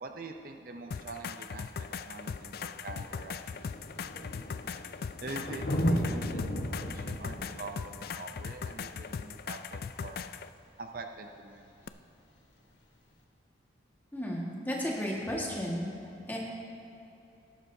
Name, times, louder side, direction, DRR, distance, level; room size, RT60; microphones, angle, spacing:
voice 1, 0.0-3.8 5.2-10.2 10.8-11.7, right 3 dB, 50° right, 5 dB, 0.5 m, -45 dB
sound 1, 0.9-10.5 11.9-12.0, left 6 dB, 55° left, 0.3 m, -39 dB
Thunder, 2.4-2.5 2.7-10.0 11.7-11.8, equal, 80° left, 1.3 m, -36 dB
voice 2, 14.1-15.9 16.3-16.4, equal, 10° left, -3 dB, 1.6 m, -33 dB
18.0 x 11.0 x 2.7 m, 2.8 s
head